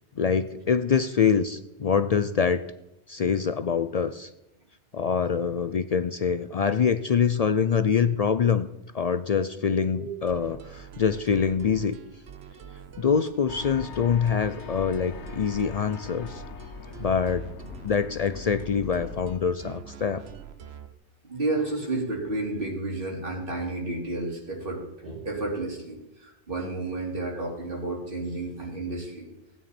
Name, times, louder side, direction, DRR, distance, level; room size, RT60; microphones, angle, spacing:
voice 1, 0.2-2.6 3.1-4.3 4.9-8.7 8.9-12.0 13.0-16.4 17.0-17.5 17.8-20.2, left 6 dB, 60° left, 12 dB, 0.4 m, -25 dB
sound 1, 10.3-20.9, right 8 dB, 65° right, 1.0 m, -45 dB
sound 2, 13.5-19.4, left 7 dB, 90° left, 1.1 m, -41 dB
voice 2, 21.2-29.3, right 2 dB, 50° right, -1 dB, 3.1 m, -31 dB
16.5 x 9.5 x 4.3 m, 0.90 s
omnidirectional pair, 1.2 m